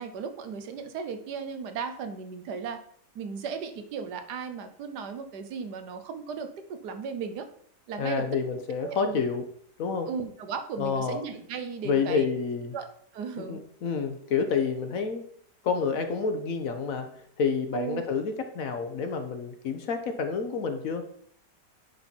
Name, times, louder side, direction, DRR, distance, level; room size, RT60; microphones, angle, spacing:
voice 1, 0.0-2.8 3.1-7.5 7.9-8.3 8.8-9.2 10.1-12.3 12.7-12.9 13.1-13.6 17.7-18.0, right 6 dB, 75° right, 8 dB, 1.4 m, -36 dB
voice 2, 8.0-9.4 9.8-10.1 10.8-11.2 11.8-12.7 13.4-15.2 15.6-21.0, left 5 dB, 60° left, 7 dB, 1.1 m, -29 dB
9.7 x 4.3 x 4.3 m, 0.63 s
omnidirectional pair, 1.8 m